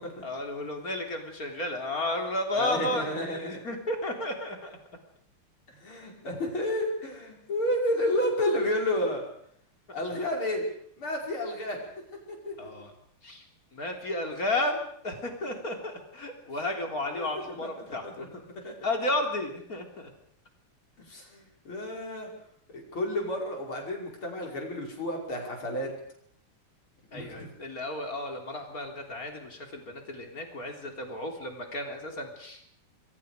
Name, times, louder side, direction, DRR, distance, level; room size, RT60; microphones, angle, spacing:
voice 1, 0.2-4.8 12.6-12.9 13.2-13.4 13.7-18.4 18.8-20.1 27.1-32.6, left 1 dB, 40° left, 3 dB, 3.9 m, -33 dB
voice 2, 2.6-3.6 5.8-9.3 9.9-10.6 11.0-11.8 12.5-12.6 17.1-17.7 18.0-18.3 18.6-18.7 21.1-22.3 22.9-25.9 27.1-27.5, left 1 dB, 70° left, 0 dB, 6.4 m, -31 dB
27.0 x 23.5 x 5.1 m, 0.66 s
omnidirectional pair, 2.4 m